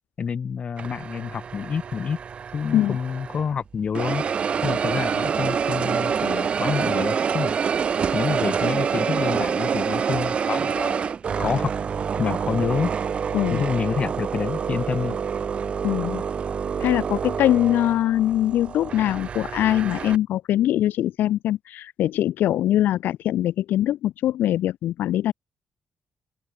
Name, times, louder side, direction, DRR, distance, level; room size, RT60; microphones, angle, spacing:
voice 1, 0.2-2.2 2.5-4.2 4.6-7.5 8.1-11.0 11.4-11.7 12.2-12.9 13.5-15.2, left 6 dB, 35° left, 3.7 m, -28 dB
sound 1, 0.8-3.5 3.9-20.2, right 7 dB, 35° right, 0.7 m, -27 dB
voice 2, 13.3-13.6 15.8-16.2 16.8-25.3, left 12 dB, 90° left, 2.9 m, -22 dB
open air
cardioid pair, 160°, 3 cm